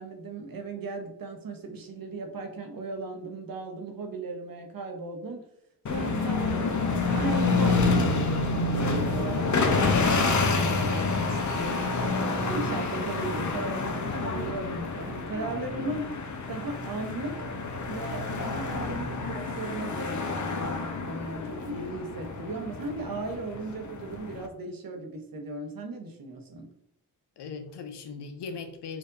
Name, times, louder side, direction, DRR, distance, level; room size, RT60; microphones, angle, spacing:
voice 1, 0.0-5.5 5.9-6.8 7.1-16.1 16.5-17.4 17.8-26.7, right 2 dB, 55° right, 4 dB, 0.9 m, -36 dB
sound 1, 5.9-24.5, left 3 dB, 45° left, 0.7 m, -28 dB
voice 2, 18.8-19.4 27.4-29.0, left 5 dB, 80° left, 6 dB, 0.6 m, -39 dB
4.4 x 2.6 x 2.6 m, 0.73 s
cardioid pair, 55°, 41 cm